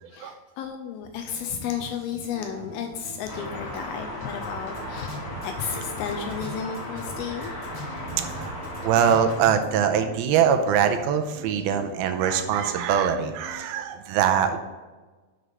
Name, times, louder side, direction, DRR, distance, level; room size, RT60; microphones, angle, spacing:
voice 1, 0.1-7.8, left 7 dB, 80° left, 5 dB, 2.4 m, -33 dB
sound 1, 1.2-13.5, right 2 dB, 60° right, 2.4 m, -45 dB
sound 2, 3.3-9.4, left 1 dB, 50° left, 3.5 m, -36 dB
sound 3, 4.4-4.5 4.7-7.1 7.4-9.6, left 1 dB, 25° left, 0.7 m, -40 dB
voice 2, 8.1-14.6, right 8 dB, 85° right, 7 dB, 2.5 m, -23 dB
11.0 x 6.4 x 3.5 m, 1.3 s
omnidirectional pair, 4.6 m